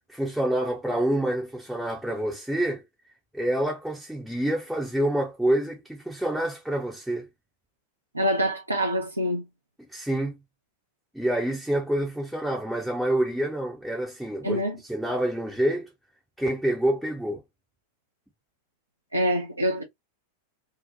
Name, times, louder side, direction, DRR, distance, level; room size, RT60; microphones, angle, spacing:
voice 1, 0.1-2.8 3.3-7.3 9.9-10.4 11.1-15.9 16.4-17.4, right 1 dB, ahead, 0.5 m, -27 dB
voice 2, 8.1-9.4 14.4-14.8 19.1-19.8, equal, 85° right, 0.4 m, -25 dB
2.6 x 2.0 x 2.5 m
figure-of-eight pair, 90°, 0 cm